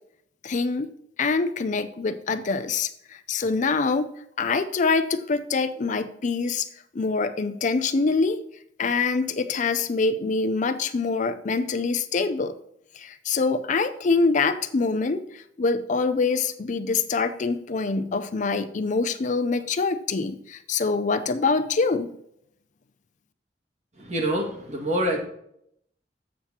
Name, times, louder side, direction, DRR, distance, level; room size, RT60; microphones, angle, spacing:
voice 1, 0.4-0.9 1.2-4.1 4.4-6.7 6.9-8.4 8.8-12.5 13.0-22.1, left 4 dB, 45° left, 11 dB, 0.5 m, -25 dB
voice 2, 24.0-25.2, right 1 dB, 40° right, 1 dB, 1.9 m, -26 dB
7.4 x 7.3 x 4.3 m, 0.73 s
head